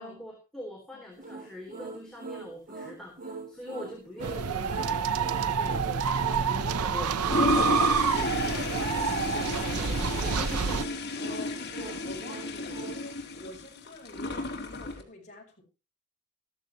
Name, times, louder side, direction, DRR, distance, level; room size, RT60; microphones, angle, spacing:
voice 1, 0.0-6.0 6.5-7.8 8.1-10.8, left 1 dB, ahead, 3.6 m, -43 dB
sound 1, 1.2-13.0, right 3 dB, 40° right, 2.9 m, -42 dB
sound 2, 4.2-10.8, right 6 dB, 85° right, 0.8 m, -28 dB
Toilet flush, 7.1-15.0, left 2 dB, 50° left, 2.8 m, -32 dB
voice 2, 11.1-15.6, left 1 dB, 35° left, 6.3 m, -47 dB
14.5 x 13.5 x 3.0 m
head